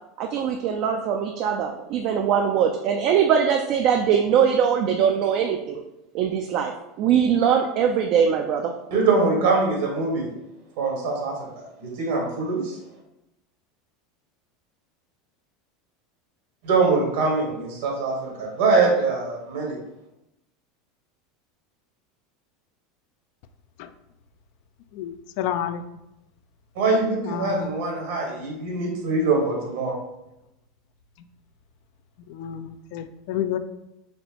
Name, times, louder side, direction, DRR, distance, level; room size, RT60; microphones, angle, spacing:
voice 1, 0.2-5.8 6.1-6.7 7.0-8.7, right 7 dB, 55° right, 4 dB, 0.4 m, -21 dB
voice 2, 8.9-10.3 10.8-11.5 11.8-12.8 16.6-19.8 26.7-30.0, right 3 dB, 75° right, -1 dB, 1.5 m, -23 dB
voice 3, 24.9-25.8 27.3-27.7 32.3-33.6, left 10 dB, 65° left, 11 dB, 0.3 m, -30 dB
4.3 x 3.2 x 2.9 m, 0.88 s
hypercardioid pair, 95°, 0 cm